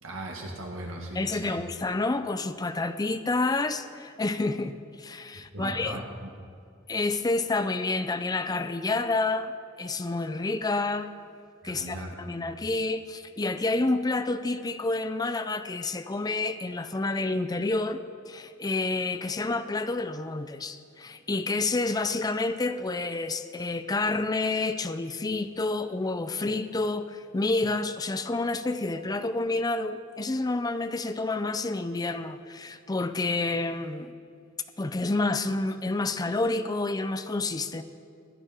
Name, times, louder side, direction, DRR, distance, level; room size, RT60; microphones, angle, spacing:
voice 1, 0.0-1.6 5.3-6.3 11.6-12.1 12.4-12.5, right 1 dB, 80° right, 0 dB, 2.0 m, -38 dB
voice 2, 1.1-6.0 6.9-9.5 9.8-11.1 11.6-34.2 34.8-37.8, left 2 dB, 20° left, 10 dB, 0.4 m, -29 dB
16.0 x 11.0 x 4.4 m, 2.2 s
head